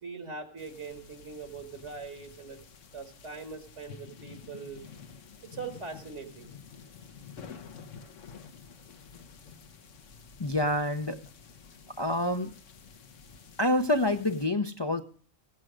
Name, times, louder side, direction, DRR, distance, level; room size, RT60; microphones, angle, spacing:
voice 1, 0.0-2.6 2.9-4.8 5.4-6.5, right 4 dB, 65° right, 6 dB, 1.9 m, -41 dB
sound 1, 0.6-14.5, left 6 dB, 75° left, 1.3 m, -50 dB
voice 2, 10.4-11.2 12.0-12.5 13.6-15.0, left 1 dB, 25° left, 6 dB, 0.6 m, -27 dB
16.0 x 8.5 x 6.2 m, 0.43 s
omnidirectional pair, 1.3 m